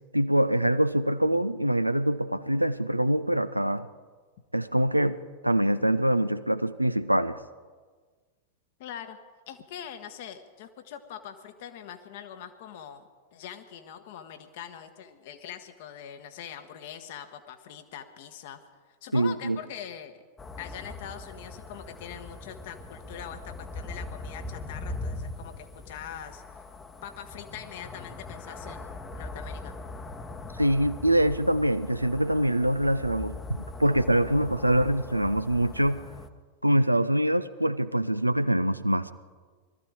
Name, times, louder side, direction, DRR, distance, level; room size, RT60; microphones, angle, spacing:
voice 1, 0.1-3.9 4.5-5.2 5.4-7.4 19.1-19.6 30.6-36.0 36.6-39.1, right 1 dB, 90° right, 14 dB, 0.5 m, -24 dB
voice 2, 8.8-9.2 9.5-13.0 13.3-18.6 19.0-20.2 20.6-26.4 27.0-29.7, left 9 dB, 50° left, 9 dB, 1.2 m, -43 dB
sound 1, 20.4-36.3, left 2 dB, 15° left, 1.0 m, -41 dB
21.0 x 13.5 x 4.8 m, 1.5 s
figure-of-eight pair, 90°, 0 cm